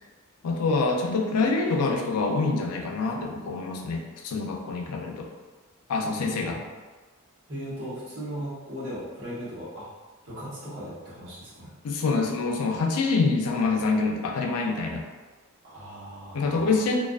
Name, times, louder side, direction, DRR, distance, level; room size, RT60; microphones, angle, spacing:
voice 1, 0.4-5.3 5.9-6.6 11.8-15.0 16.3-17.0, left 3 dB, 85° left, 2 dB, 0.4 m, -26 dB
voice 2, 6.1-6.5 7.5-9.9 10.2-11.7 15.6-16.8, equal, 60° right, -9 dB, 1.0 m, -38 dB
2.3 x 2.2 x 2.4 m, 1.3 s
head